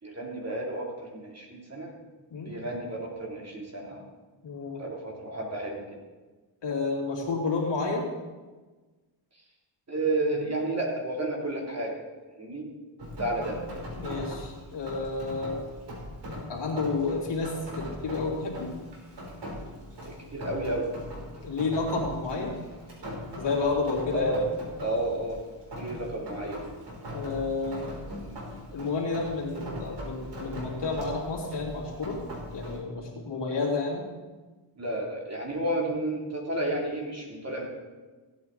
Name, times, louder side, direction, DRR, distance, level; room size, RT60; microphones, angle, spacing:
voice 1, 0.0-1.9 2.4-4.0 4.8-5.8 9.9-12.0 12.4-12.7 13.2-13.6 20.0-20.9 24.1-24.4 24.8-25.4 25.8-26.6 34.8-37.7, right 1 dB, 30° right, -1 dB, 3.1 m, -31 dB
voice 2, 4.4-4.8 6.6-8.1 13.9-15.6 16.5-18.7 21.4-22.6 23.4-24.4 27.1-27.9 28.7-32.2 32.5-34.1, left 3 dB, 60° left, -2 dB, 2.9 m, -30 dB
Rain, 13.0-32.8, equal, 55° right, 3.8 m, -40 dB
15.5 x 9.1 x 4.0 m, 1.3 s
cardioid pair, 85°, 48 cm